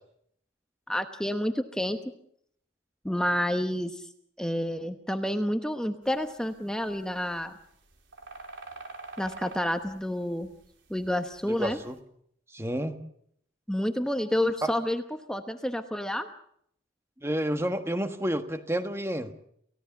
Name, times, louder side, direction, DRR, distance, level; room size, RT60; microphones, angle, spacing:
voice 1, 0.9-2.0 3.0-4.1 4.4-7.5 9.2-10.5 10.9-11.8 13.7-16.3, left 1 dB, 5° left, 7 dB, 1.0 m, -29 dB
sound 1, 6.0-11.9, right 3 dB, 70° right, 4.1 m, -47 dB
voice 2, 11.5-12.0 12.5-13.0 14.6-14.7 17.2-19.3, equal, 15° right, 8 dB, 1.4 m, -30 dB
29.0 x 16.5 x 7.1 m, 0.70 s
head